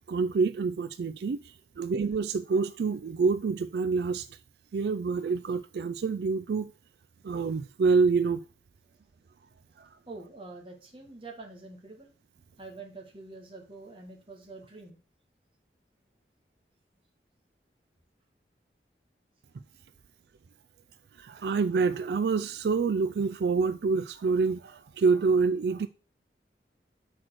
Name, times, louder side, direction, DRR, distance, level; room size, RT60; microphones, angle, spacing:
voice 1, 0.1-4.3 4.7-6.7 7.2-8.4 9.8-9.9 21.2-25.9, right 4 dB, 70° right, 0.4 m, -27 dB
voice 2, 10.1-12.1 12.6-15.0, right 3 dB, 30° right, 1.6 m, -46 dB
6.1 x 4.5 x 6.2 m
head